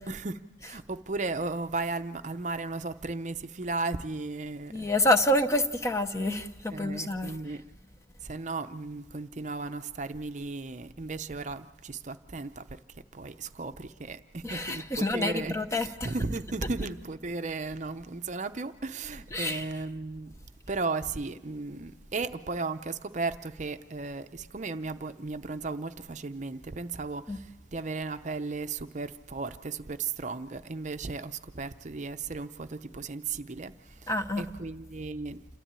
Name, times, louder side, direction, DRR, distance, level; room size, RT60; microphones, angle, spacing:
voice 1, 0.1-4.9 6.7-7.6 8.2-20.4 20.7-34.1 34.4-35.4, right 3 dB, 40° right, 0.6 m, -35 dB
voice 2, 4.7-7.4 14.4-16.1 19.3-19.6 27.3-27.4 34.1-34.4, left 1 dB, 15° left, 0.8 m, -27 dB
28.0 x 13.0 x 8.9 m
head